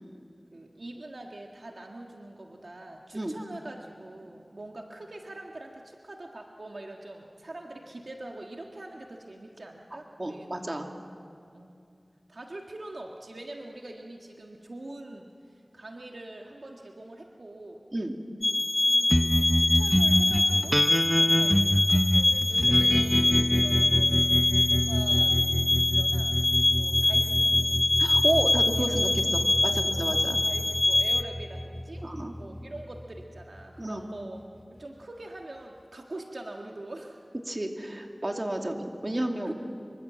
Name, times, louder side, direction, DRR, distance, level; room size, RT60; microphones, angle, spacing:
voice 1, 0.5-10.5 11.5-11.8 12.3-17.8 18.8-20.8 21.2-24.3 24.7-26.4 26.8-28.2 28.7-29.2 29.6-30.1 30.4-32.0 32.3-34.4 34.7-37.2 38.6-38.8 39.4-39.5, right 2 dB, 75° right, 1 dB, 1.7 m, -44 dB
voice 2, 10.2-10.9 17.9-18.2 28.0-30.4 32.0-32.3 33.8-34.0 37.4-39.5, right 1 dB, 40° right, 2 dB, 2.6 m, -31 dB
sound 1, 18.4-31.2, left 2 dB, 60° left, 1.1 m, -24 dB
sound 2, 19.1-33.8, equal, ahead, 0.8 m, -27 dB
26.0 x 24.5 x 7.6 m, 2.4 s
wide cardioid pair, 50°, 0 cm